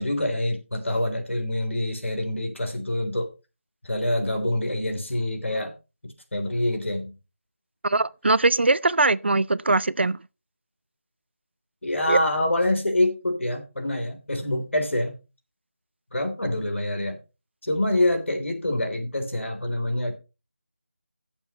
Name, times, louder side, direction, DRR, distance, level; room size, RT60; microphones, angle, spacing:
voice 1, 0.0-3.3 3.8-5.7 6.0-7.1 11.8-15.1 16.1-17.2 17.6-20.2, left 1 dB, 70° left, 3.4 m, -26 dB
voice 2, 7.8-10.2 12.1-12.2, right 3 dB, 55° right, 0.4 m, -21 dB
15.5 x 7.2 x 3.0 m
figure-of-eight pair, 170°, 7 cm